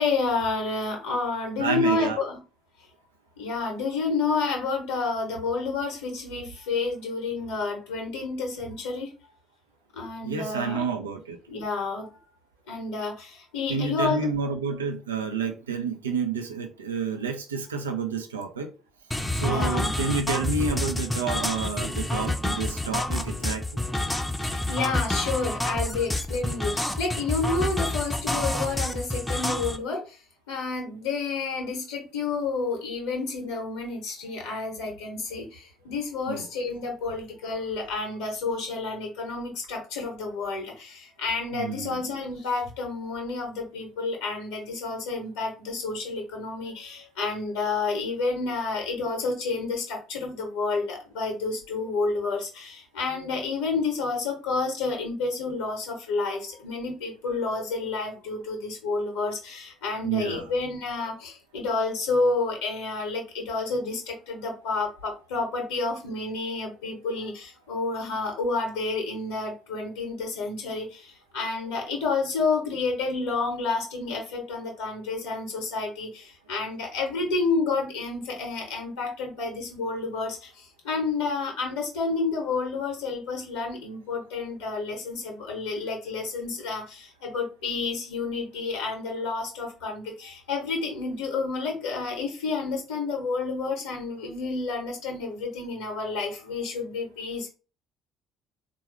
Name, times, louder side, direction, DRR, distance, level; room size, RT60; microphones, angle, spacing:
voice 1, 0.0-2.4 3.4-9.1 9.9-10.8 11.5-12.2 12.7-14.3 19.3-19.9 24.4-30.2 30.5-97.5, left 3 dB, 70° left, 0.8 m, -30 dB
voice 2, 1.6-2.2 10.2-11.4 13.7-18.7 19.3-23.8 36.3-36.5 41.5-42.0 60.0-60.5, right 5 dB, 80° right, 0.5 m, -29 dB
sound 1, 19.1-29.8, left 1 dB, 10° left, 0.5 m, -28 dB
3.7 x 2.3 x 3.1 m
figure-of-eight pair, 50°, 0 cm